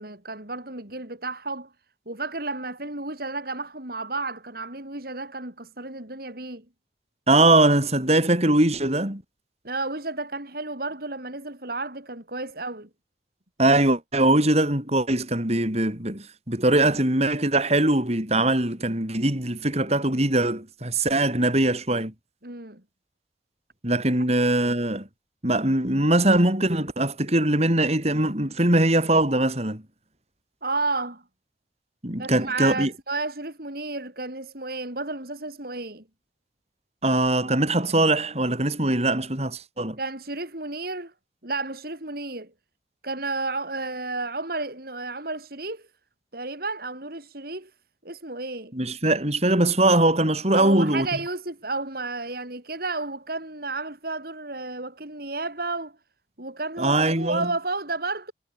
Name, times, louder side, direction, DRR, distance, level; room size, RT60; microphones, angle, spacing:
voice 1, 0.0-1.7 2.1-6.7 9.6-12.9 22.4-22.8 30.6-31.2 32.2-36.0 40.0-41.1 41.4-42.5 43.0-45.9 46.3-47.7 48.0-48.8 50.5-56.0 56.4-58.3, right 3 dB, 55° right, 5.5 m, -32 dB
voice 2, 7.3-9.2 13.6-22.1 23.8-25.1 25.4-29.8 32.0-32.9 37.0-40.0 48.7-51.1 56.8-57.5, right 1 dB, 35° right, 6.1 m, -21 dB
head